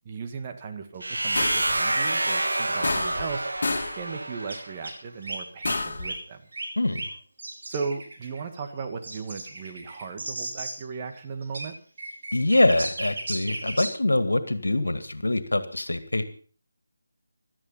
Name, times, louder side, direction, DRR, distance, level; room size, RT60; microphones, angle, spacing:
voice 1, 0.0-3.5 3.9-6.4 7.7-11.8, right 5 dB, 25° right, 5 dB, 1.9 m, -36 dB
sound 1, 1.0-4.8, right 2 dB, 75° right, 2.4 m, -28 dB
sound 2, 1.4-1.8 2.8-3.4 3.6-4.0 5.6-6.1, left 3 dB, 50° left, 2.6 m, -29 dB
sound 3, 4.2-4.3 4.5-4.6 4.8-4.9 5.2-5.7 6.0-6.1 6.5-7.1 7.4-10.7 11.4-11.7 12.0-13.9, right 2 dB, 50° right, 5.0 m, -35 dB
voice 2, 12.3-16.2, left 2 dB, 75° left, 11 dB, 2.2 m, -24 dB
16.0 x 12.5 x 5.6 m, 0.43 s
figure-of-eight pair, 160°, 0 cm